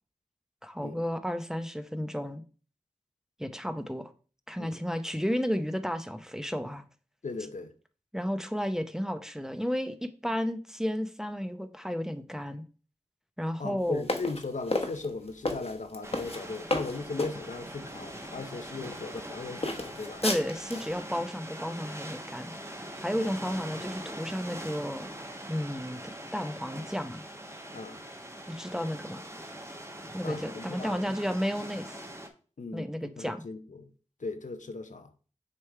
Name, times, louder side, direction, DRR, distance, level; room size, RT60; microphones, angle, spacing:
voice 1, 0.6-2.4 3.4-4.1 4.5-6.8 8.1-12.6 13.4-14.0 20.2-25.1 25.5-26.0 26.3-27.2 28.5-29.2 30.1-32.0 32.7-33.4, equal, 5° right, 0.7 m, -32 dB
voice 2, 7.2-7.7 13.6-20.2 23.2-23.4 27.7-28.0 30.2-31.2 32.6-33.9 34.2-35.1, left 3 dB, 75° left, 0.7 m, -38 dB
sound 1, 14.0-17.4 18.1-18.3 18.8-19.3 19.6-20.9, left 2 dB, 50° left, 1.0 m, -32 dB
sound 2, 16.0-32.3, right 1 dB, 20° right, 1.1 m, -42 dB
6.6 x 3.4 x 4.6 m
wide cardioid pair, 45°, 13 cm